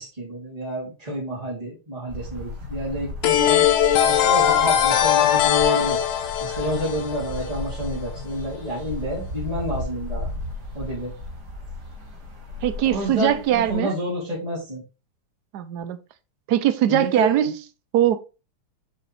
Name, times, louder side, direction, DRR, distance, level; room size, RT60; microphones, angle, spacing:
voice 1, 0.0-3.6 4.0-6.0 6.4-10.3 10.7-11.1 12.9-14.8 16.9-17.5, equal, 15° right, 3.3 m, -29 dB
sound 1, 2.1-13.8, left 2 dB, 50° right, 2.7 m, -35 dB
sound 2, 3.2-7.9, left 10 dB, 75° left, 1.7 m, -20 dB
voice 2, 12.6-13.9 15.5-16.0 16.5-17.6 17.9-18.2, right 11 dB, 65° right, 1.0 m, -21 dB
7.1 x 6.5 x 3.4 m
omnidirectional pair, 2.4 m